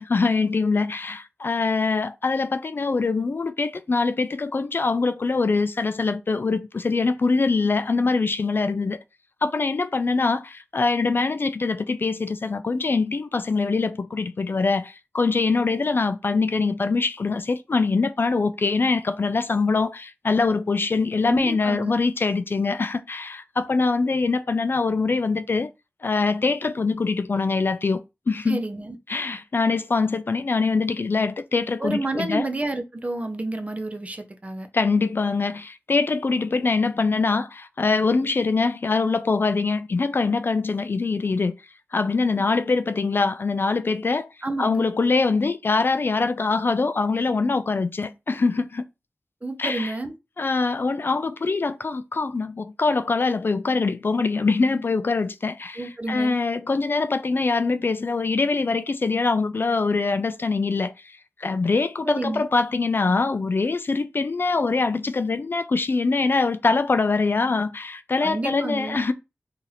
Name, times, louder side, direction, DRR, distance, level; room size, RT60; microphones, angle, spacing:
voice 1, 0.0-9.0 9.4-25.7 26.0-28.0 28.3-28.6 29.1-32.5 34.7-41.5 41.9-44.3 44.6-48.8 49.6-49.9 50.4-69.1, left 4 dB, 50° left, 0.3 m, -23 dB
voice 2, 21.2-22.0 28.5-29.0 31.8-34.7 44.4-44.9 49.4-50.2 55.8-56.4 62.0-62.4 68.2-69.0, right 2 dB, 30° right, 0.6 m, -30 dB
2.8 x 2.5 x 3.9 m
wide cardioid pair, 75°, 5 cm